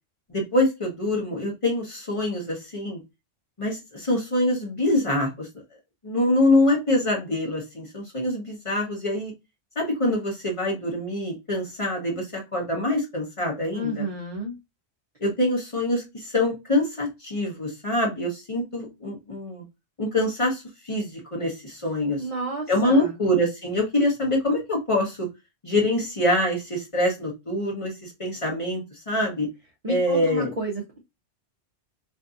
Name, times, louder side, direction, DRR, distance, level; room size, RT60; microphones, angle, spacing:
voice 1, 0.3-3.0 3.6-5.5 6.0-9.3 9.8-14.1 15.2-19.6 20.0-22.2 22.7-25.3 25.6-29.5 29.9-30.5, left 1 dB, 30° left, 0.9 m, -25 dB
voice 2, 13.7-14.6 22.2-23.2 29.8-31.0, right 2 dB, 45° right, 0.5 m, -31 dB
2.6 x 2.6 x 2.3 m
omnidirectional pair, 1.2 m